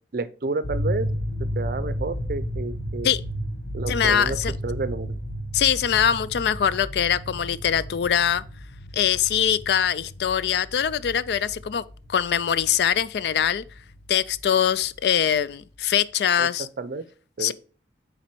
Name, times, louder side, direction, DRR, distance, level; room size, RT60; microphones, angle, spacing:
voice 1, 0.1-1.1 1.6-3.1 3.7-4.4 4.6-5.2 16.4-17.1 17.4-17.5, right 3 dB, 55° right, 0.5 m, -30 dB
sound 1, 0.6-15.5, equal, 80° left, 1.1 m, -33 dB
voice 2, 3.9-4.5 5.5-8.4 8.9-13.6 14.1-16.7 17.4-17.5, left 9 dB, 65° left, 0.3 m, -23 dB
6.0 x 4.1 x 4.4 m
head